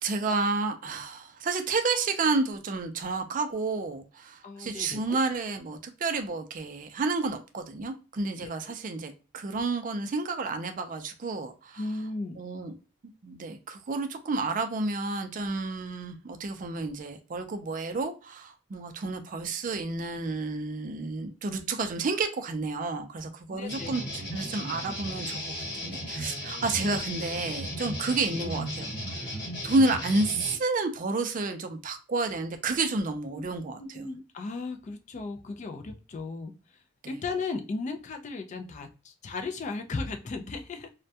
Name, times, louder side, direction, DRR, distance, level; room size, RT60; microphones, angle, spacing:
voice 1, 0.0-11.8 12.4-12.8 13.2-25.4 25.8-29.4 29.6-34.0 37.0-37.1, right 3 dB, 40° right, 0.4 m, -30 dB
voice 2, 4.4-5.2 8.4-8.5 11.7-12.4 23.5-24.0 26.7-26.9 28.3-28.5 33.3-33.4 33.8-40.9, left 3 dB, 35° left, 0.3 m, -36 dB
sound 1, 23.7-30.5, equal, 55° left, 1.2 m, -35 dB
2.2 x 2.1 x 2.7 m
head